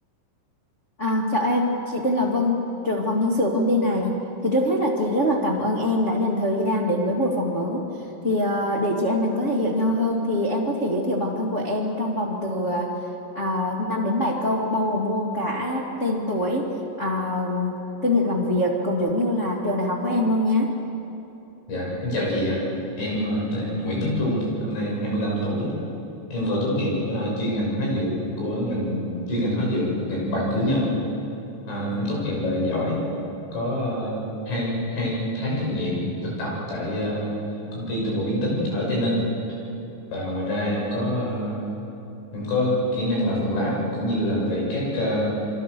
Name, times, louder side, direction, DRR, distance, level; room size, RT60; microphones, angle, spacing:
voice 1, 1.0-7.8 8.2-12.9 13.3-16.7 17.0-17.8 18.0-20.7, left 1 dB, 45° left, -3 dB, 0.9 m, -24 dB
voice 2, 21.7-22.6 23.0-25.8 26.3-31.0 31.7-33.0 33.5-37.3 37.7-39.2 40.1-41.6 42.3-45.3, left 1 dB, 75° left, -3 dB, 9.2 m, -25 dB
28.5 x 23.0 x 6.9 m, 2.9 s
omnidirectional pair, 5.3 m